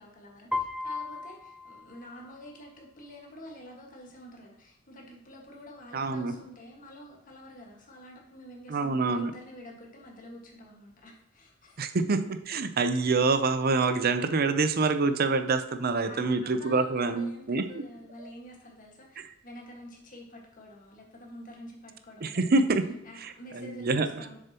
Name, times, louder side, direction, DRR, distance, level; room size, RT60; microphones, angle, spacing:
voice 1, 0.0-11.8 15.9-22.7 23.0-24.4, equal, 40° left, -1 dB, 1.6 m, -48 dB
Piano, 0.5-2.6, left 3 dB, ahead, 0.4 m, -36 dB
voice 2, 5.9-6.3 8.7-9.3 11.8-17.6 19.2-19.3 22.2-22.9 23.2-24.1, right 3 dB, 50° right, 9 dB, 0.6 m, -26 dB
7.1 x 6.8 x 2.9 m, 0.81 s
head